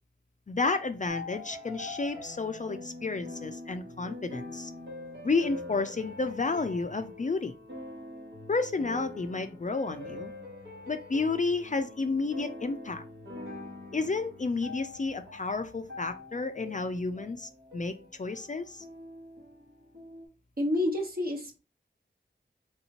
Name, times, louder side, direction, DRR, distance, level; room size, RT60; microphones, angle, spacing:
voice 1, 0.5-4.7 5.2-7.5 8.5-10.3 10.9-13.0 13.9-18.8, left 3 dB, 40° left, 0.4 m, -31 dB
sound 1, 1.1-20.3, left 2 dB, 75° right, 1.3 m, -44 dB
voice 2, 20.6-21.6, left 1 dB, 50° right, 1.1 m, -29 dB
3.4 x 2.7 x 2.9 m
wide cardioid pair, 40°, 20 cm